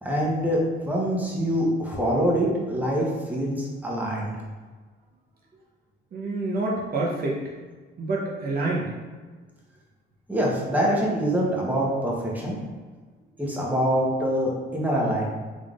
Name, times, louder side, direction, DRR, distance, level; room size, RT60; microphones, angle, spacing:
voice 1, 0.0-4.4 10.3-12.6 13.4-15.3, equal, 10° right, -3 dB, 0.9 m, -25 dB
voice 2, 6.1-7.4 8.0-8.9, right 2 dB, 50° right, -3 dB, 0.7 m, -27 dB
3.6 x 3.4 x 2.4 m, 1.4 s
cardioid pair, 90°, 20 cm